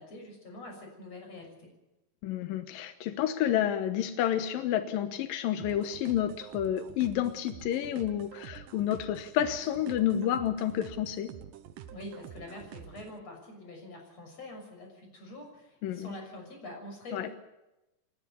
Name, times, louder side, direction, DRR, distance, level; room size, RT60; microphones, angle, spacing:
voice 1, 0.0-1.7 11.9-17.3, left 1 dB, 35° left, 3 dB, 7.3 m, -45 dB
voice 2, 2.2-11.3 15.8-16.1 17.1-17.3, left 11 dB, 75° left, 10 dB, 2.1 m, -30 dB
sound 1, 5.6-13.2, right 10 dB, 75° right, 2.0 m, -48 dB
28.0 x 13.0 x 8.4 m, 0.95 s
omnidirectional pair, 5.5 m